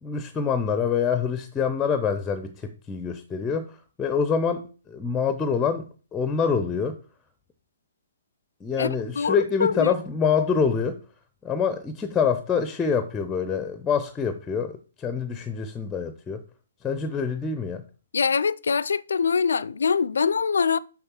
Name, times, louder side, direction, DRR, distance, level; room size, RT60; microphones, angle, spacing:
voice 1, 0.0-7.0 8.6-11.0 11.4-16.4 16.8-17.8, left 6 dB, 15° left, 0.5 m, -26 dB
voice 2, 9.2-9.9 18.1-20.8, left 5 dB, 65° left, 0.3 m, -23 dB
6.5 x 5.7 x 4.4 m
figure-of-eight pair, 125°, 0 cm